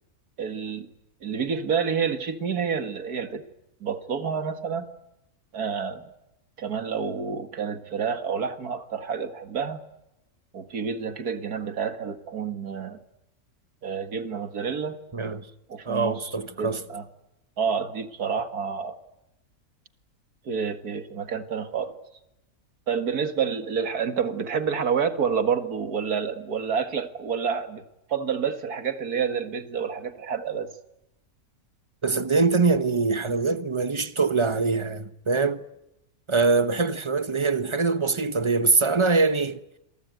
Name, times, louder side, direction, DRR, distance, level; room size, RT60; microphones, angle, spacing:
voice 1, 0.4-0.9 1.2-3.4 3.8-4.9 5.5-6.0 6.6-9.8 10.5-13.0 13.8-15.0 15.7-16.3 16.6-17.1 17.6-19.0 20.5-22.0 22.9-27.8 28.1-30.7, right 6 dB, 85° right, 2.3 m, -28 dB
voice 2, 15.1-15.5 15.8-16.8 32.0-35.6 36.3-39.6, right 4 dB, 25° right, 0.9 m, -23 dB
27.5 x 23.0 x 9.3 m
omnidirectional pair, 1.6 m